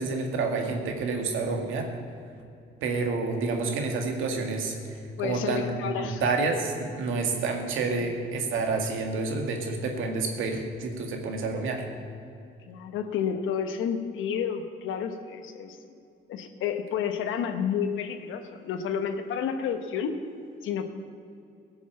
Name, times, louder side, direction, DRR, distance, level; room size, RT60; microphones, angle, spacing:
voice 1, 0.0-1.9 2.8-11.9, right 3 dB, 85° right, 3 dB, 2.0 m, -29 dB
voice 2, 5.2-6.3 7.9-8.1 12.7-15.8 16.3-20.2 20.6-20.9, left 7 dB, 85° left, 7 dB, 1.1 m, -30 dB
16.0 x 7.1 x 7.1 m, 2.5 s
cardioid pair, 90°, 20 cm